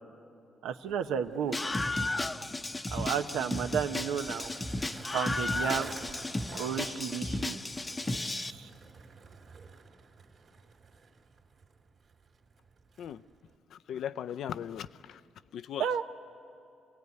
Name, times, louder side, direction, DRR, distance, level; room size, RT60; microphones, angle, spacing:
voice 1, 0.6-1.6 2.9-4.5 5.1-5.9 6.5-7.6 8.3-8.7 15.8-16.0, right 8 dB, 90° right, 7 dB, 1.0 m, -32 dB
Skateboard, 0.8-13.6, right 4 dB, 55° right, 2.7 m, -52 dB
Screaming, 1.5-8.5, left 2 dB, 20° left, 0.8 m, -34 dB
voice 2, 13.7-15.2 15.5-15.9, left 9 dB, 70° left, 15 dB, 0.5 m, -38 dB
27.5 x 16.5 x 9.5 m, 2.7 s
cardioid pair, 90°, 0 cm